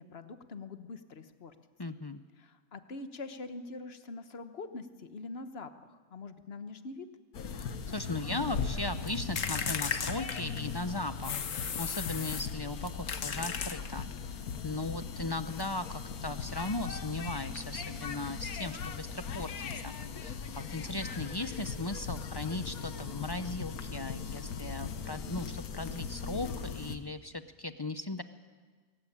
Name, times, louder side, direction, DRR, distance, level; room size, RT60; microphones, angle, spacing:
voice 1, 0.0-1.5 2.4-7.1, left 3 dB, 45° left, 9 dB, 1.4 m, -44 dB
voice 2, 1.8-2.2 7.9-11.3 11.8-20.0 20.2-28.2, left 2 dB, 30° left, 10 dB, 0.5 m, -37 dB
sound 1, 7.3-27.0, left 6 dB, 90° left, 1.6 m, -39 dB
sound 2, 9.4-10.8 11.2-12.6 13.1-14.2, left 7 dB, 65° left, 1.4 m, -35 dB
23.0 x 15.5 x 9.9 m, 1.4 s
omnidirectional pair, 1.5 m